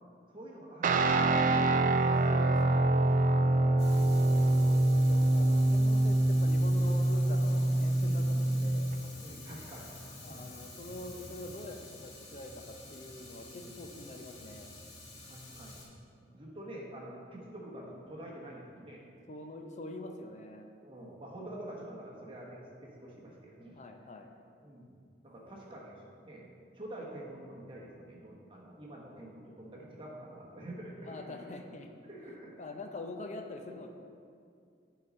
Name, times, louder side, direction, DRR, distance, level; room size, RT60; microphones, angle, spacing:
voice 1, 0.3-2.0 3.4-3.9 8.0-8.4 9.2-9.9 10.2-10.5 13.7-13.8 15.2-15.8 16.2-19.0 20.8-23.8 24.6-31.5 32.1-32.6, right 1 dB, 30° right, -3 dB, 1.2 m, -47 dB
Guitar, 0.8-9.0, right 2 dB, 45° right, 0.4 m, -25 dB
voice 2, 2.3-3.0 4.4-8.9 10.2-14.7 19.3-20.7 23.7-24.3 31.0-31.9 32.6-33.9, left 2 dB, 40° left, 4 dB, 0.6 m, -45 dB
Fire, 3.8-15.8, left 2 dB, 85° left, 1.6 m, -48 dB
8.0 x 4.1 x 5.3 m, 2.3 s
head